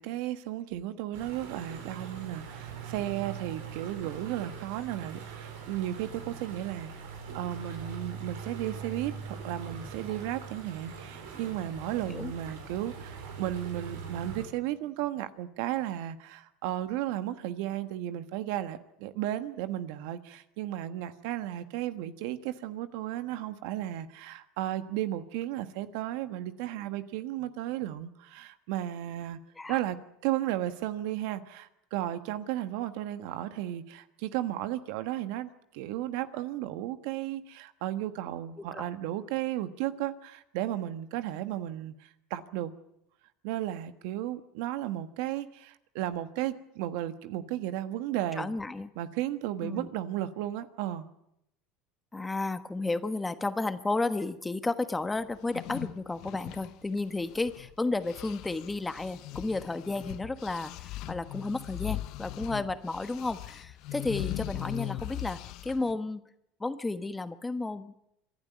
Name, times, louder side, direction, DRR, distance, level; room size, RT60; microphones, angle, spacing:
voice 1, 0.0-29.4 29.7-30.0 30.2-42.7 43.4-48.5 48.9-51.1, right 13 dB, 70° right, 11 dB, 1.3 m, -34 dB
sound 1, 1.1-14.4, right 6 dB, 90° right, 4.7 m, -42 dB
voice 2, 48.4-48.9 49.6-49.9 52.1-66.2 66.6-67.9, left 3 dB, 10° left, 11 dB, 1.2 m, -32 dB
sound 2, 55.4-57.7 58.0-65.9, left 16 dB, 60° left, 0.8 m, -39 dB
26.0 x 11.5 x 9.1 m, 0.79 s
supercardioid pair, 110°, 0 cm